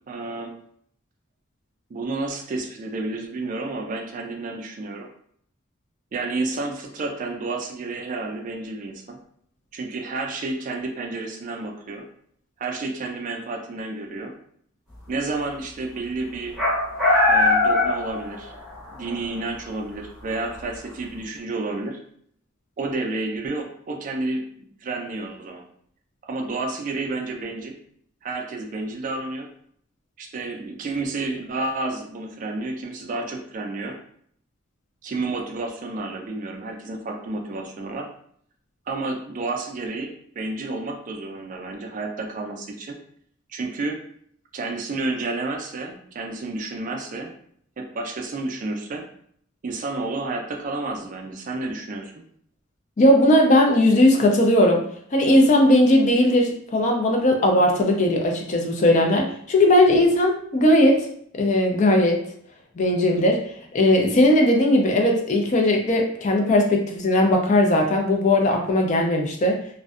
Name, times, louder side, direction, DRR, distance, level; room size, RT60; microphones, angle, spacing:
voice 1, 0.1-0.6 1.9-5.1 6.1-9.2 9.7-12.1 12.6-14.3 15.1-16.6 17.3-18.5 18.9-22.0 22.8-25.6 26.2-27.8 28.2-29.5 30.2-34.0 35.0-38.1 38.9-43.0 43.5-44.0 44.5-47.3 47.8-49.0 49.6-52.1, right 3 dB, 40° right, 3 dB, 0.3 m, -30 dB
sound 1, 16.6-18.8 19.1-19.2 20.4-20.5, left 2 dB, ahead, 0.8 m, -20 dB
voice 2, 53.0-54.9 55.1-61.1 61.4-62.2 62.8-63.5 63.7-69.6, left 1 dB, 35° left, 2 dB, 0.4 m, -18 dB
2.5 x 2.1 x 2.3 m, 0.64 s
head